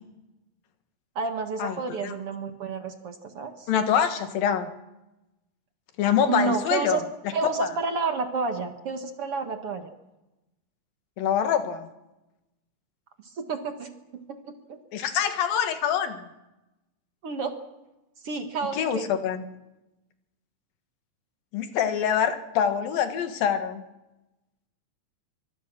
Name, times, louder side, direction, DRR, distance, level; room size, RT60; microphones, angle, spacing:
voice 1, 1.2-3.7 6.3-7.0 7.3-9.9 13.4-13.9 14.3-14.8 17.2-17.5 18.2-19.1, right 4 dB, 50° right, 6 dB, 2.2 m, -30 dB
voice 2, 3.7-4.7 6.0-7.7 11.2-11.9 14.9-16.3 18.7-19.4 21.5-23.8, left 8 dB, 90° left, 8 dB, 3.4 m, -25 dB
24.0 x 23.0 x 6.1 m, 0.99 s
omnidirectional pair, 3.9 m